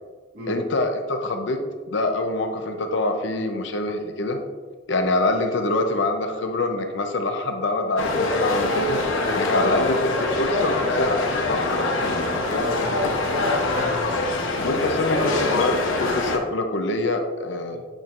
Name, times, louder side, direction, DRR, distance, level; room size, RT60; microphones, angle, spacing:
voice 1, 0.5-1.6 1.9-4.4 4.9-9.0 9.3-10.0 10.4-11.8 14.6-17.8, left 2 dB, 65° left, 5 dB, 0.6 m, -25 dB
sound 1, 8.0-16.4, left 2 dB, 90° left, 0.9 m, -24 dB
voice 2, 9.5-10.2 12.4-13.2 13.6-14.0 17.7-17.8, equal, 55° right, -4 dB, 1.8 m, -33 dB
8.9 x 4.4 x 2.5 m, 1.4 s
head